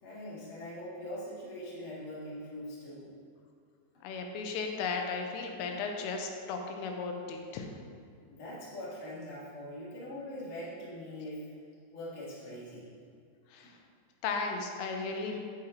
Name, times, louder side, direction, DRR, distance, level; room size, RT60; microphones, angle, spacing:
voice 1, 0.0-3.1 8.3-11.4 11.9-12.9, left 1 dB, 40° left, -9 dB, 1.1 m, -42 dB
voice 2, 4.0-7.7 13.5-13.7 14.2-15.4, left 4 dB, 90° left, 3 dB, 3.4 m, -35 dB
9.1 x 8.6 x 3.0 m, 2.2 s
omnidirectional pair, 5.6 m